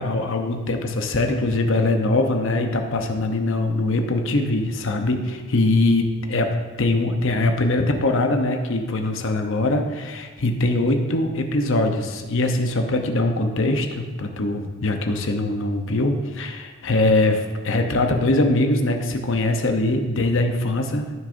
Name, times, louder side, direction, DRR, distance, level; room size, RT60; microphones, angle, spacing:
voice 1, 0.0-21.1, left 2 dB, 65° left, 5 dB, 0.8 m, -22 dB
14.0 x 6.3 x 2.6 m, 1.3 s
head